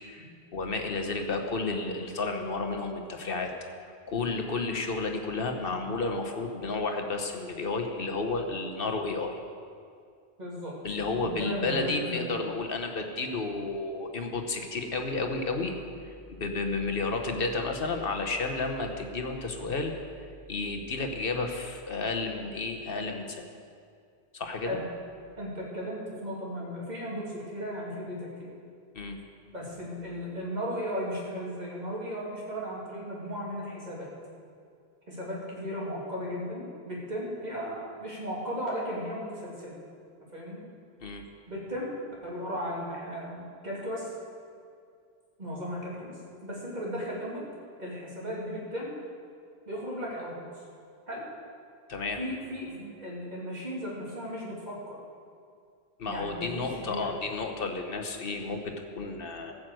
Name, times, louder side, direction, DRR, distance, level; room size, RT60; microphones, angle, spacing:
voice 1, 0.5-3.5 4.1-9.4 10.8-15.7 16.0-19.9 20.5-23.5 24.3-24.8 28.9-29.2 41.0-41.2 51.9-52.2 56.0-59.5, left 3 dB, 60° left, 4 dB, 1.3 m, -32 dB
voice 2, 10.4-10.7 11.1-12.3 24.6-24.9 25.4-28.5 29.5-34.1 35.1-39.8 40.3-40.6 41.5-44.1 45.4-47.4 47.8-49.0 49.7-50.4 51.1-51.3 52.2-55.0 56.0-57.1, equal, 40° right, -5 dB, 2.8 m, -36 dB
15.0 x 6.1 x 7.7 m, 2.2 s
omnidirectional pair, 1.1 m